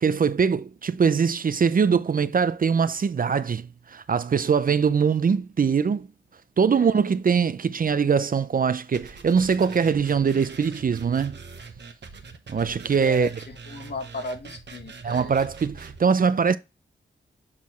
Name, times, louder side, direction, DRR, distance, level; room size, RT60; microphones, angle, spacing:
voice 1, 0.0-6.1 6.6-11.4 12.5-13.3 15.0-16.6, right 6 dB, 45° right, 0.5 m, -22 dB
voice 2, 6.7-7.1 13.0-15.4, left 3 dB, 60° left, 1.5 m, -37 dB
sound 1, 8.9-16.0, right 4 dB, 65° right, 1.1 m, -43 dB
7.4 x 4.3 x 3.0 m
cardioid pair, 55°, 20 cm